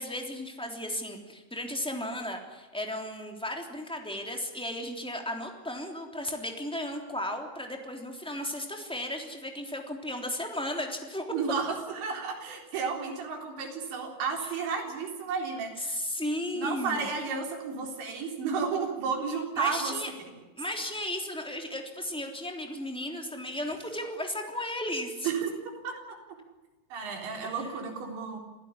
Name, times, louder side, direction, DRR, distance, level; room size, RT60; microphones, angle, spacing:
voice 1, 0.0-11.3 15.8-17.1 19.6-20.1 20.6-25.3 27.4-27.7, left 1 dB, ahead, 2 dB, 2.3 m, -35 dB
voice 2, 11.3-16.0 16.5-19.9 25.2-25.5 25.8-26.2 26.9-28.4, right 5 dB, 80° right, 1 dB, 6.2 m, -32 dB
27.0 x 16.5 x 9.9 m, 1.2 s
omnidirectional pair, 5.1 m